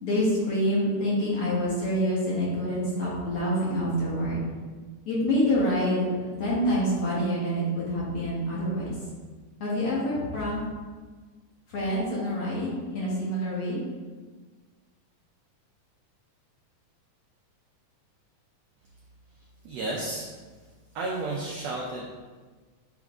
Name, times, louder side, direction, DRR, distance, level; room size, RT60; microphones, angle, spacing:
voice 1, 0.0-4.4 5.1-6.1 6.4-8.9 9.6-10.6 11.7-13.8, equal, 55° left, -7 dB, 2.2 m, -26 dB
voice 2, 19.6-20.3 20.9-22.1, right 2 dB, 80° right, -2 dB, 1.5 m, -32 dB
8.0 x 3.7 x 3.5 m, 1.4 s
omnidirectional pair, 3.8 m